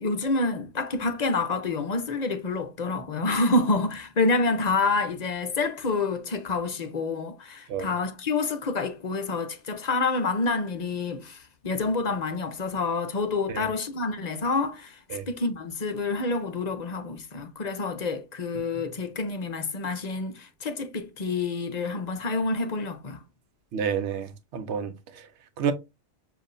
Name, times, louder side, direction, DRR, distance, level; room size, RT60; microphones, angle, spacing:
voice 1, 0.0-23.2, left 3 dB, 45° left, 0.7 m, -28 dB
voice 2, 23.7-24.9 25.6-25.7, right 7 dB, 80° right, 1.0 m, -29 dB
7.2 x 2.6 x 2.5 m
omnidirectional pair, 1.2 m